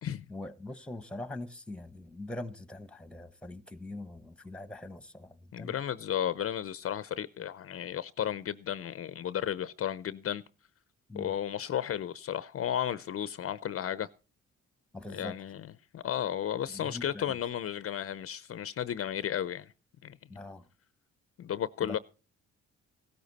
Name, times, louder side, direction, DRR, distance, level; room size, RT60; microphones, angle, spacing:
voice 1, 0.3-5.8 11.1-11.3 14.9-15.3 16.7-17.4 20.3-20.6 21.8-22.0, left 2 dB, 5° left, 1.1 m, -42 dB
voice 2, 5.5-10.4 11.1-14.1 15.1-15.7 15.9-19.7 20.0-20.2 21.4-22.0, left 10 dB, 50° left, 0.6 m, -33 dB
16.0 x 13.0 x 4.1 m
cardioid pair, 90°, 30 cm